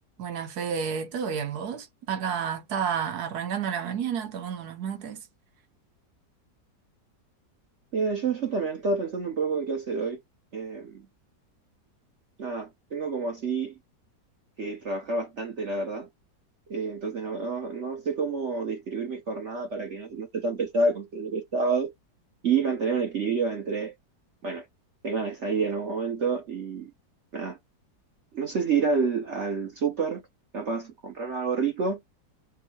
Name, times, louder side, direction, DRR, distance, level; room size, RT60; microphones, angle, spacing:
voice 1, 0.2-5.2, right 7 dB, 65° right, 1.4 m, -31 dB
voice 2, 7.9-10.2 10.5-11.1 12.4-13.7 14.6-16.1 16.7-21.9 22.4-23.9 24.4-24.6 25.0-26.9 27.3-27.6 28.3-30.2 30.5-32.0, right 4 dB, 50° right, 1.1 m, -28 dB
3.4 x 2.7 x 4.4 m
omnidirectional pair, 1.8 m